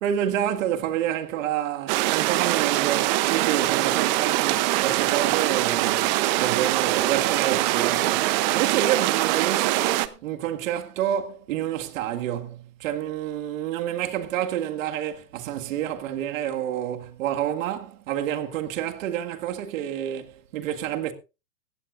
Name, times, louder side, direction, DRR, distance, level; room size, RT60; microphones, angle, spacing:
voice 1, 0.0-21.1, right 11 dB, 50° right, 1.9 m, -29 dB
sound 1, 1.9-10.1, right 17 dB, 30° right, 0.7 m, -23 dB
17.0 x 15.0 x 2.5 m
hypercardioid pair, 135°, 49 cm